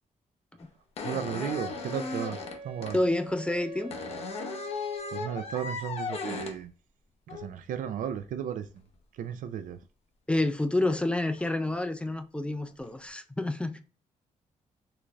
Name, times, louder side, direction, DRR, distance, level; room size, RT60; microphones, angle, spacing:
sound 1, 0.6-0.7 1.0-3.0 3.9-6.6 7.3-7.5 10.4-10.5 11.3-11.6 12.7-12.9, left 5 dB, 50° left, 0.6 m, -37 dB
voice 1, 1.0-3.0 5.1-6.7 7.3-8.9 9.1-9.8, right 8 dB, 80° right, 0.4 m, -35 dB
Wind instrument woodwind instrument, 1.4-5.6, right 3 dB, 50° right, 0.9 m, -44 dB
voice 2, 2.9-4.0 10.3-13.8, left 2 dB, 10° left, 0.3 m, -28 dB
3.8 x 3.1 x 2.3 m
wide cardioid pair, 160°, 14 cm